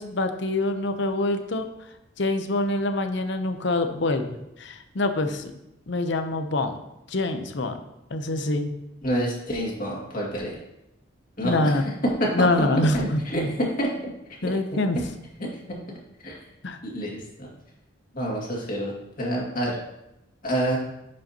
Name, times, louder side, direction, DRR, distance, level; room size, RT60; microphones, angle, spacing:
voice 1, 0.0-1.7 2.2-4.3 4.6-5.5 5.9-6.7 7.1-7.8 8.1-8.7 11.4-11.8 12.3-13.6 14.4-15.0 16.6-16.8, left 2 dB, 60° left, 7 dB, 0.7 m, -25 dB
voice 2, 9.0-10.6 11.4-11.9 12.2-14.1 14.4-14.5 15.4-15.5 16.2-16.4 16.8-17.5 18.1-19.8 20.4-20.8, equal, 45° left, -3 dB, 2.1 m, -28 dB
10.5 x 5.3 x 2.9 m, 0.89 s
head